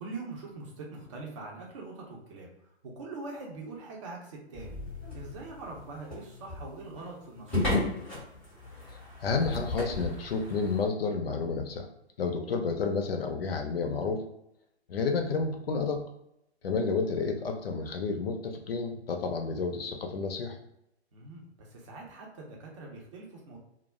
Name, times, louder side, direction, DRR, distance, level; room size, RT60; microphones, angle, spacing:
voice 1, 0.0-4.8 5.1-7.9 12.5-12.6 16.6-16.7 21.1-23.6, right 3 dB, 30° right, -2 dB, 0.6 m, -43 dB
sound 1, 4.5-10.8, left 2 dB, 5° left, 0.8 m, -35 dB
voice 2, 8.9-11.9 12.2-14.2 14.9-16.0 16.6-20.6, left 4 dB, 60° left, 5 dB, 0.5 m, -30 dB
2.3 x 2.0 x 3.4 m, 0.81 s
figure-of-eight pair, 135°, 34 cm